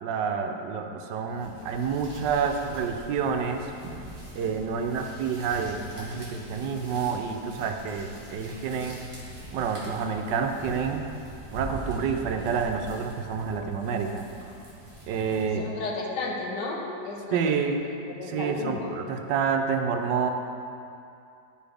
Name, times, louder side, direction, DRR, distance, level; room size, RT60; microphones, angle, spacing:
voice 1, 0.0-3.9 4.3-9.0 9.5-11.0 11.5-14.3 15.1-15.7 17.3-17.8 18.3-20.3, right 6 dB, 85° right, 5 dB, 1.3 m, -28 dB
sound 1, 1.2-15.7, right 1 dB, 20° right, 1.9 m, -43 dB
voice 2, 15.6-17.5 18.2-18.9, left 3 dB, 80° left, -1 dB, 1.6 m, -33 dB
11.0 x 5.0 x 3.4 m, 2.6 s
omnidirectional pair, 1.9 m